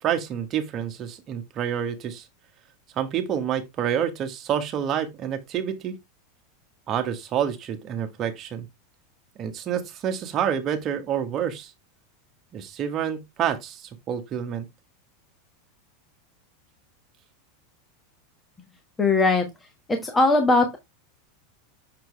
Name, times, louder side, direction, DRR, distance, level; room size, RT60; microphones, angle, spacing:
voice 1, 0.0-2.2 2.9-6.0 6.9-8.7 9.4-11.7 12.5-14.6, right 9 dB, 40° right, 1.4 m, -28 dB
voice 2, 19.0-19.4 19.9-20.8, left 3 dB, 15° left, 1.5 m, -19 dB
6.8 x 4.4 x 3.3 m
hypercardioid pair, 110°, 0 cm